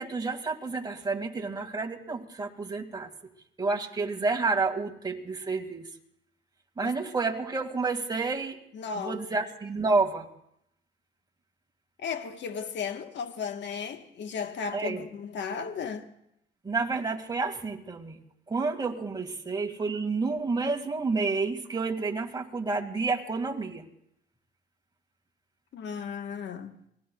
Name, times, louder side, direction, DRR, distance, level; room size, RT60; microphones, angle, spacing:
voice 1, 0.0-3.1 3.6-5.9 6.8-8.6 9.0-10.3 14.7-15.1 16.6-18.2 18.5-23.8, right 3 dB, 20° right, 2.1 m, -30 dB
voice 2, 8.7-9.4 12.0-16.1 25.7-26.8, left 6 dB, 65° left, 1.4 m, -35 dB
27.5 x 19.5 x 2.4 m
cardioid pair, 90°, 20 cm